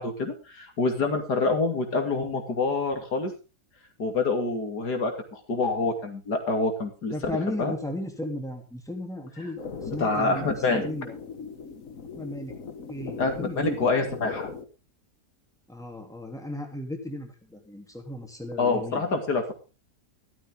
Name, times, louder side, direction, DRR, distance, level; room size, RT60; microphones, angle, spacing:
voice 1, 0.0-3.3 4.0-7.7 9.9-10.9 13.2-14.5 18.6-19.5, left 3 dB, 90° left, 5 dB, 3.2 m, -26 dB
voice 2, 7.1-11.1 12.1-12.5 12.9-13.9 15.7-19.5, left 1 dB, ahead, 3 dB, 3.1 m, -35 dB
sound 1, 9.6-14.6, left 5 dB, 55° left, 1.8 m, -39 dB
14.0 x 13.0 x 3.8 m, 0.32 s
omnidirectional pair, 1.7 m